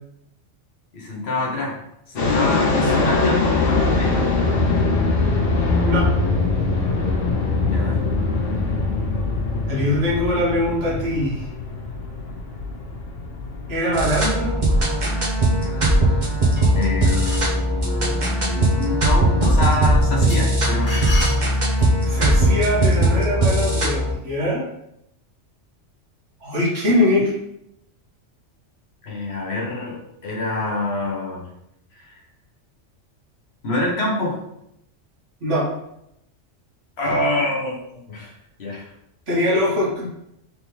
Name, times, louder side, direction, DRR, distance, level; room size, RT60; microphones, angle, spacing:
voice 1, 0.9-1.8 2.1-4.3 7.6-8.1 16.7-21.0 29.0-31.5 32.1-32.2 33.6-34.4 37.0-38.3 38.6-38.9, left 2 dB, 60° left, -1 dB, 1.2 m, -26 dB
sound 1, 2.2-18.9, left 3 dB, 80° left, 1.2 m, -23 dB
voice 2, 9.7-11.4 13.7-14.5 22.1-24.7 26.4-27.3 35.4-35.7 39.3-40.1, left 1 dB, 75° right, -5 dB, 1.7 m, -22 dB
sound 2, 13.9-24.1, right 1 dB, 40° right, 0.9 m, -19 dB
sound 3, 16.6-17.6 20.3-22.0, left 1 dB, 40° left, 1.3 m, -32 dB
3.7 x 3.5 x 3.1 m, 0.79 s
omnidirectional pair, 1.2 m